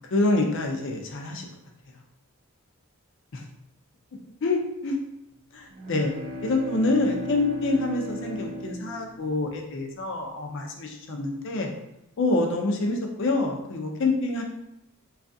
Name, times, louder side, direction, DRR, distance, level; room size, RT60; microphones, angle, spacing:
voice 1, 0.1-1.5 3.3-3.4 4.4-5.0 5.5-6.1 6.4-11.7 12.2-14.4, left 2 dB, 55° left, 2 dB, 0.5 m, -26 dB
sound 1, 5.7-9.7, left 1 dB, 40° right, 0.4 m, -36 dB
3.2 x 2.4 x 2.6 m, 0.84 s
head